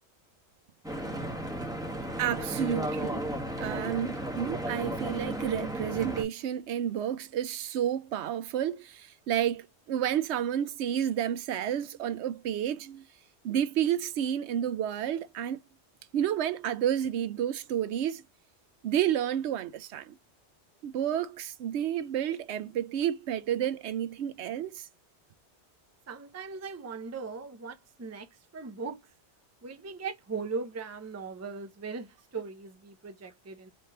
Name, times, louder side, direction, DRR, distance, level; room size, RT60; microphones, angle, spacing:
Stream / Boat Water vehicle, 0.8-6.2, right 1 dB, 5° right, 1.3 m, -34 dB
voice 1, 2.2-3.3 3.6-13.0 13.4-15.6 16.1-18.2 18.8-20.2 20.8-24.9, right 10 dB, 75° right, 0.8 m, -30 dB
voice 2, 26.1-29.0 29.6-33.7, right 4 dB, 20° right, 0.4 m, -39 dB
4.1 x 3.2 x 2.8 m
omnidirectional pair, 1.2 m